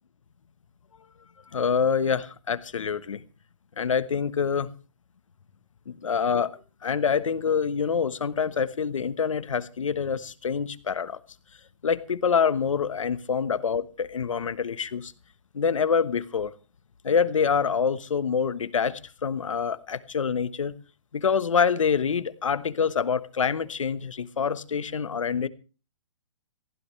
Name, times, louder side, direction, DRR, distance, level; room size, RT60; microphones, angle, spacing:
voice 1, 1.5-3.2 3.8-4.7 5.9-6.6 6.8-11.2 11.8-15.1 15.5-16.5 17.0-20.8 21.1-25.5, left 6 dB, 90° left, 1.2 m, -26 dB
20.0 x 15.5 x 3.3 m
hypercardioid pair, 155°, 16 cm